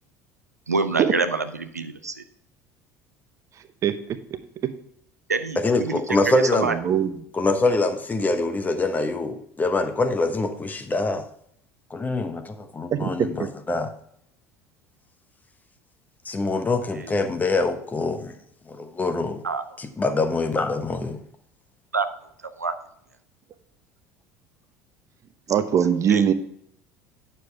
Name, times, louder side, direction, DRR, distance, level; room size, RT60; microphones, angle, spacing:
voice 1, 0.7-2.2 5.3-6.7 16.9-17.2 19.4-19.6 21.9-22.1 22.6-22.7 26.1-26.2, right 4 dB, 85° right, 8 dB, 0.5 m, -26 dB
voice 2, 3.8-4.2 6.7-7.1 12.9-13.1 25.5-26.3, right 8 dB, 40° right, 11 dB, 0.9 m, -21 dB
voice 3, 5.6-6.7 7.3-11.2 11.9-13.9 16.3-18.3 18.7-19.4 19.8-21.2, left 2 dB, 20° left, 8 dB, 1.1 m, -24 dB
9.5 x 6.9 x 3.5 m, 0.69 s
figure-of-eight pair, 65°, 8 cm